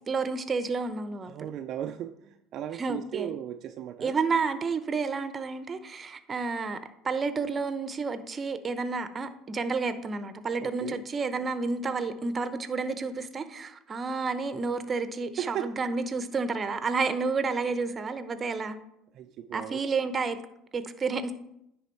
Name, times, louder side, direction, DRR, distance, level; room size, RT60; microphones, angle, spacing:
voice 1, 0.1-1.5 2.8-3.3 4.0-6.8 7.0-18.8 19.5-20.4 20.7-21.3, right 4 dB, 30° right, 11 dB, 0.7 m, -30 dB
voice 2, 1.3-4.2 10.6-11.0 15.4-15.7 19.1-19.8, right 10 dB, 55° right, 8 dB, 0.4 m, -36 dB
10.0 x 3.5 x 4.5 m, 0.79 s
supercardioid pair, 95°, 0 cm